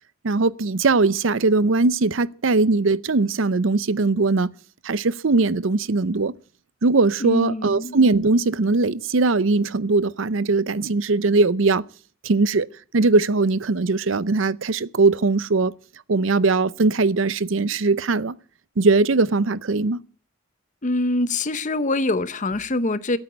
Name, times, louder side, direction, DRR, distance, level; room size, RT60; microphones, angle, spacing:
voice 1, 0.2-4.5 4.8-6.3 6.8-11.8 12.2-12.7 12.9-15.7 16.1-18.3 18.8-20.0, right 3 dB, 65° right, 0.7 m, -20 dB
voice 2, 7.2-8.0 20.8-23.2, left 2 dB, 40° left, 0.8 m, -24 dB
13.0 x 8.9 x 9.4 m
head